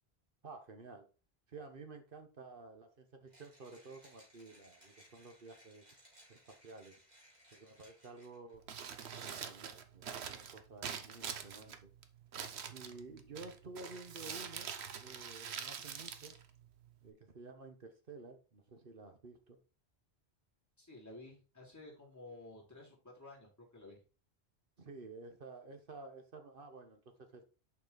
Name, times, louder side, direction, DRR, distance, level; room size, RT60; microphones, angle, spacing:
voice 1, 0.4-1.1 1.5-5.8 6.3-7.0 7.5-8.6 9.1-11.9 12.7-14.7 15.0-16.3 17.0-19.6 24.8-27.4, right 3 dB, 55° right, 1.3 m, -52 dB
Mechanisms, 3.3-8.5, equal, 40° right, 3.1 m, -63 dB
Crumpling crinkling, 8.5-17.1, right 7 dB, 80° right, 1.1 m, -45 dB
voice 2, 20.8-24.0, left 2 dB, 15° left, 3.0 m, -53 dB
6.7 x 5.5 x 4.0 m
omnidirectional pair, 1.1 m